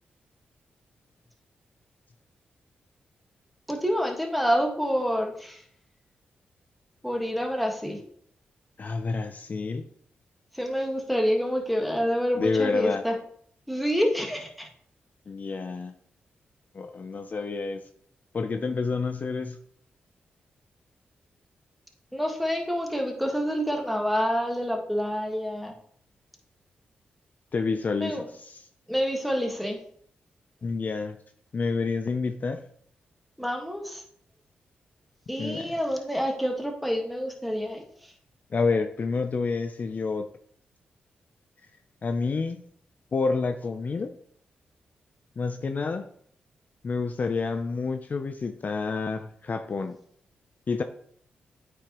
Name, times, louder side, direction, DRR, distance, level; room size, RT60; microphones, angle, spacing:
voice 1, 3.7-5.6 7.0-8.0 10.5-13.1 13.7-14.7 22.1-25.7 28.0-28.3 28.9-29.8 33.4-34.0 35.3-37.8, equal, ahead, 1 dB, 1.5 m, -27 dB
voice 2, 8.8-9.8 12.4-13.0 15.3-15.9 16.7-17.8 18.3-19.6 27.5-28.6 30.6-31.2 31.5-32.7 35.4-35.7 38.5-40.3 42.0-42.6 43.1-44.1 45.4-46.1 46.8-50.0 50.7-50.8, left 4 dB, 50° left, 7 dB, 0.5 m, -28 dB
8.6 x 4.9 x 3.0 m, 0.62 s
cardioid pair, 65°, 4 cm